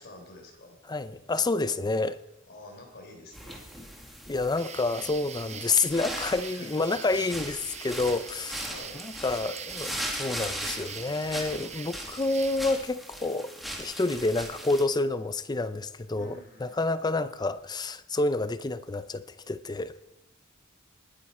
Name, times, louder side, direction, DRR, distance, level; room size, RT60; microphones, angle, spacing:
voice 1, 0.0-0.8 1.9-2.2 2.5-3.7 4.1-4.2 6.5-7.0 8.7-9.0 16.1-17.0, left 1 dB, 55° left, 3 dB, 3.7 m, -49 dB
voice 2, 0.9-2.2 4.3-8.7 9.0-13.5 13.8-19.9, left 3 dB, 20° left, 13 dB, 0.5 m, -29 dB
sound 1, 3.3-14.8, equal, ahead, 2.1 m, -39 dB
sound 2, 4.6-12.6, right 7 dB, 35° right, 0.7 m, -43 dB
20.5 x 9.2 x 4.2 m, 0.91 s
head